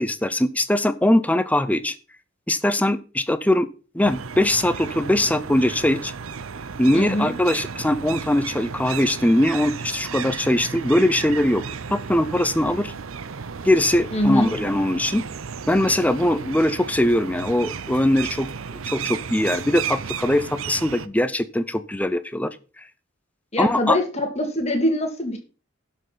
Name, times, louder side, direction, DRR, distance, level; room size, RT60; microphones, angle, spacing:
voice 1, 0.0-1.9 2.5-3.7 3.9-6.1 6.8-11.6 11.9-12.9 13.6-15.3 15.7-18.5 18.9-22.5 23.6-24.0, left 1 dB, 5° left, 12 dB, 0.7 m, -21 dB
sound 1, 4.0-21.1, right 6 dB, 85° right, 0.7 m, -34 dB
voice 2, 6.9-7.3 14.1-14.5 23.5-25.4, left 1 dB, 30° left, 4 dB, 2.4 m, -23 dB
11.5 x 5.7 x 5.8 m, 0.35 s
head